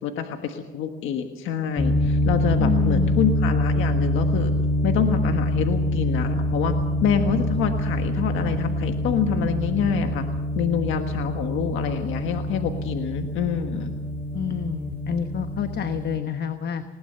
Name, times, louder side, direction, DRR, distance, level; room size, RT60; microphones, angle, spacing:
voice 1, 0.0-4.5 4.8-10.2 10.5-13.9, left 7 dB, 90° left, 6 dB, 1.4 m, -26 dB
sound 1, 1.8-16.2, equal, 10° left, 1.3 m, -25 dB
voice 2, 2.6-3.2 14.3-16.8, left 8 dB, 55° left, 9 dB, 1.1 m, -28 dB
20.5 x 19.0 x 6.7 m, 1.2 s
cardioid pair, 90°, 20 cm